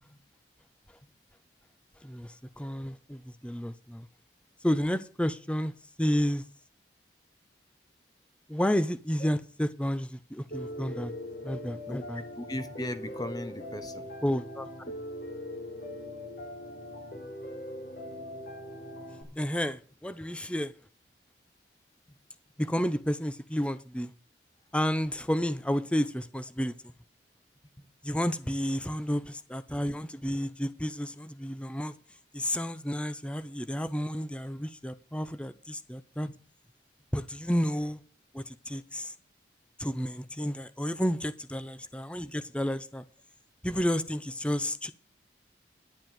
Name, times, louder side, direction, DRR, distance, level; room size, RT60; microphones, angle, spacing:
voice 1, 2.0-4.1 4.6-5.7 6.0-6.4 8.5-11.1 11.4-12.2 14.2-14.7 19.4-20.7 22.6-24.1 24.7-26.7 28.0-31.9 32.3-36.3 37.1-38.0 38.3-39.1 39.8-43.0 43.6-44.9, equal, 5° left, 0.6 m, -31 dB
Piano, 10.5-19.2, left 1 dB, 50° left, 3.8 m, -41 dB
voice 2, 12.4-14.1 19.2-19.4 27.8-28.2 36.3-36.4, left 1 dB, 20° left, 1.2 m, -38 dB
11.0 x 7.4 x 7.6 m
head